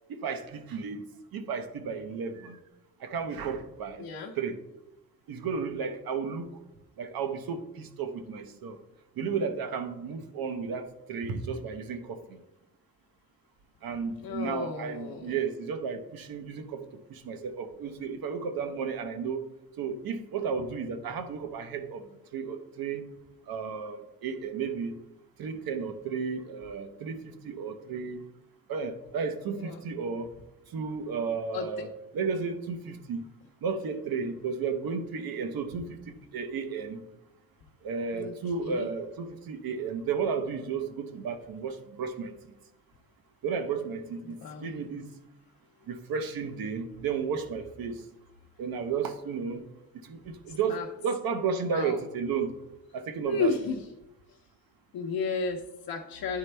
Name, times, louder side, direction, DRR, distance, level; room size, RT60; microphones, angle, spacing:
voice 1, 0.1-1.0 1.3-2.6 3.0-4.1 4.4-4.6 5.3-6.5 7.0-8.8 9.2-12.4 13.8-19.5 19.8-22.0 22.3-23.0 23.5-25.0 25.4-28.2 28.7-30.3 30.7-31.9 32.1-33.2 33.6-37.0 37.8-42.3 43.4-45.1 45.9-48.0 48.6-49.6 50.0-50.2 50.5-50.8 51.0-52.5 52.9-53.5, right 5 dB, 85° right, 8 dB, 0.8 m, -33 dB
voice 2, 4.0-4.3 14.2-15.4 29.5-29.8 31.5-31.7 38.1-38.3 38.6-38.9 44.2-44.7 50.5-50.9 51.6-52.0 53.3-53.9 54.3-54.4 54.9-56.4, left 4 dB, 90° left, 1 dB, 0.7 m, -33 dB
9.8 x 4.2 x 3.3 m, 0.97 s
wide cardioid pair, 180°, 34 cm